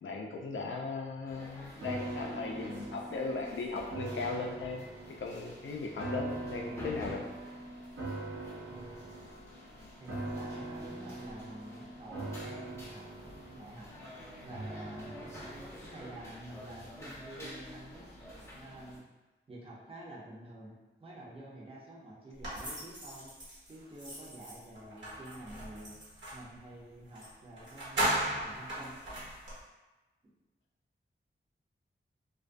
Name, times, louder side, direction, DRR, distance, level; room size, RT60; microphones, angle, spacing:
voice 1, 0.0-4.8 5.2-7.3 8.4-8.6, left 3 dB, 70° left, 1 dB, 0.4 m, -38 dB
sound 1, 1.3-19.0, left 1 dB, 15° left, 0.6 m, -50 dB
sound 2, 1.8-17.1 17.5-17.6, right 2 dB, 90° right, 0.7 m, -43 dB
voice 2, 8.7-9.0 10.0-13.1 13.5-13.9 14.4-15.3 15.8-18.0 18.5-19.1 19.5-20.7 21.0-23.3 23.7-25.9 26.3-29.0, right 1 dB, 25° right, -6 dB, 0.6 m, -48 dB
sound 3, 22.4-26.5 27.2-27.3 27.6-29.6, right 1 dB, 60° right, 1.0 m, -37 dB
2.3 x 2.1 x 2.5 m, 1.1 s
wide cardioid pair, 80°, 21 cm